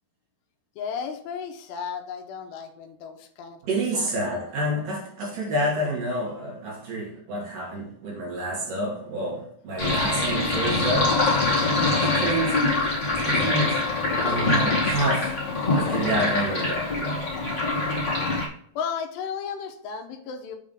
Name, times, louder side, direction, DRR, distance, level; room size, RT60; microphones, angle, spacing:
voice 1, 0.8-4.3 18.8-20.6, left 6 dB, 85° left, 2.9 m, -34 dB
voice 2, 3.7-12.6 13.2-13.8 14.2-15.4 15.7-16.9, right 1 dB, 55° right, 3.1 m, -28 dB
Sink (filling or washing), 9.8-18.5, left 2 dB, 30° left, 1.4 m, -24 dB
7.3 x 3.6 x 5.4 m
omnidirectional pair, 4.9 m